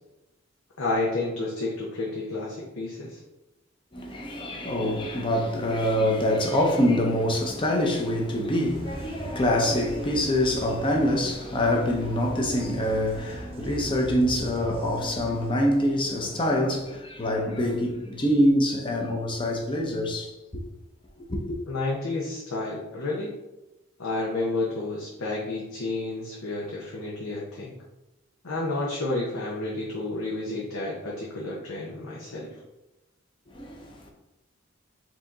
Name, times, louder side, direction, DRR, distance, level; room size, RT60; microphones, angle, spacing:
voice 1, 0.8-3.2 21.7-23.3 24.0-27.8 28.4-32.5, left 2 dB, 90° left, 0.8 m, -30 dB
voice 2, 3.9-20.3 21.2-21.6 33.5-34.1, left 1 dB, 25° left, 0.7 m, -25 dB
sound 1, 8.7-15.5, right 1 dB, 25° right, 0.4 m, -41 dB
4.8 x 2.8 x 3.7 m
head